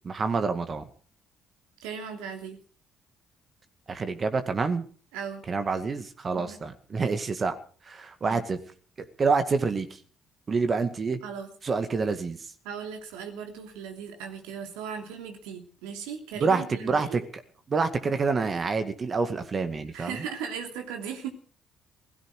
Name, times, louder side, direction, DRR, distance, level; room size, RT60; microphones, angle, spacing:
voice 1, 0.0-0.8 3.9-4.8 5.5-7.6 7.9-8.6 9.0-9.9 10.5-11.2 11.6-12.4 16.4-17.2 17.7-20.2, right 4 dB, 40° right, 9 dB, 2.0 m, -27 dB
voice 2, 1.8-2.6 5.1-5.4 6.3-6.6 8.2-8.4 11.2-11.5 12.6-17.2 19.9-21.3, right 7 dB, 75° right, 4 dB, 2.9 m, -37 dB
17.5 x 15.5 x 4.9 m, 0.42 s
hypercardioid pair, 45°, 0 cm